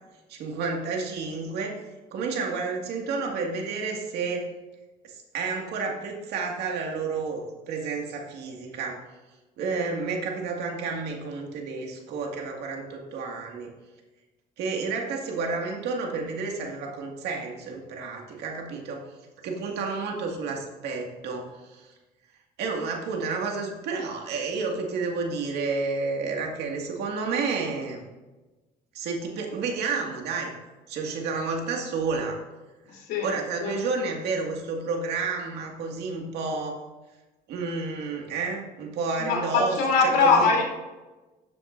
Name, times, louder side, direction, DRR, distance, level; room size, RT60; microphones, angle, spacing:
voice 1, 0.3-1.8 2.1-4.5 5.0-9.0 9.6-13.7 14.6-19.0 19.4-21.9 22.6-28.0 28.9-30.5 30.9-32.4 33.2-36.8 37.5-40.5, right 4 dB, 80° right, 1 dB, 2.0 m, -30 dB
voice 2, 32.9-33.3 33.6-33.7 39.2-40.6, left 4 dB, 85° left, -2 dB, 3.3 m, -22 dB
12.5 x 7.8 x 2.6 m, 1.1 s
cardioid pair, 110°, 17 cm